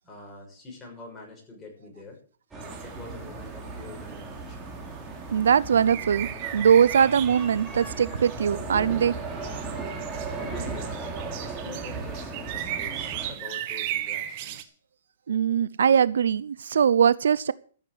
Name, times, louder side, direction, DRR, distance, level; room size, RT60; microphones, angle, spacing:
voice 1, 0.0-2.2 2.5-4.8 10.4-11.1 11.4-14.7, left 3 dB, 10° left, 6.3 m, -45 dB
sound 1, 2.5-13.3, right 3 dB, 10° right, 3.1 m, -36 dB
sound 2, 2.6-14.6, right 12 dB, 40° right, 1.3 m, -37 dB
voice 2, 5.3-9.1 15.3-17.5, right 7 dB, 80° right, 0.6 m, -21 dB
14.0 x 7.4 x 8.0 m
hypercardioid pair, 150°, 0 cm